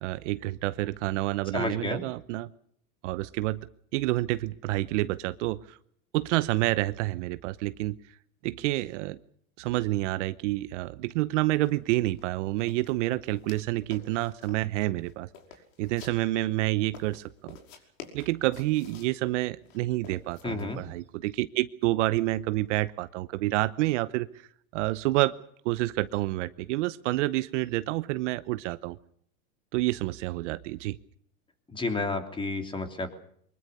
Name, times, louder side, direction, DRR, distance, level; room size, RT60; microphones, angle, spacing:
voice 1, 0.0-2.5 3.0-3.6 3.9-5.8 6.1-8.0 8.4-9.2 9.6-15.3 15.8-17.6 18.1-24.5 24.7-25.4 25.6-29.0 29.7-31.0, right 18 dB, 55° right, 14 dB, 0.9 m, -28 dB
voice 2, 1.5-2.0 20.4-20.8 31.7-33.1, left 3 dB, 10° left, 6 dB, 3.2 m, -31 dB
sound 1, 11.6-11.7 12.0-12.3 12.6-13.6 13.9-14.7 15.0-16.5 16.9-19.2 19.7-20.8, left 7 dB, 65° left, 5.6 m, -49 dB
24.0 x 21.5 x 6.8 m, 0.66 s
hypercardioid pair, 130°, 42 cm